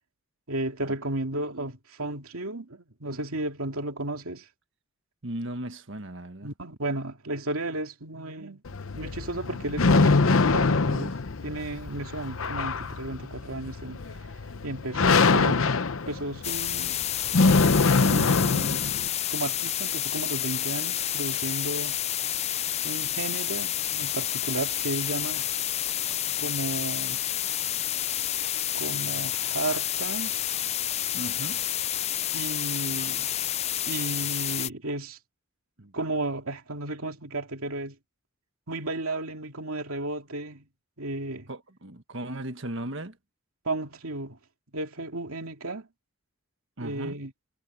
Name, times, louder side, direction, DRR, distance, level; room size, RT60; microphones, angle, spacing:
voice 1, 0.5-4.5 6.4-8.6 8.9-11.2 11.4-14.0 14.6-15.7 16.1-17.0 18.0-18.8 19.3-22.0 22.8-25.4 26.4-27.2 28.7-30.5 32.3-33.3 33.9-35.2 35.9-38.0 38.7-40.7 41.0-41.5 43.6-44.4 44.7-45.9 46.8-47.3, right 2 dB, 90° right, 2.6 m, -33 dB
voice 2, 5.2-6.5 31.1-31.7 35.8-35.9 41.5-43.2 46.8-47.2, right 1 dB, 60° right, 1.6 m, -37 dB
sound 1, 8.7-19.1, left 3 dB, 70° left, 0.9 m, -24 dB
sound 2, 16.4-34.7, left 11 dB, 30° left, 0.4 m, -29 dB
head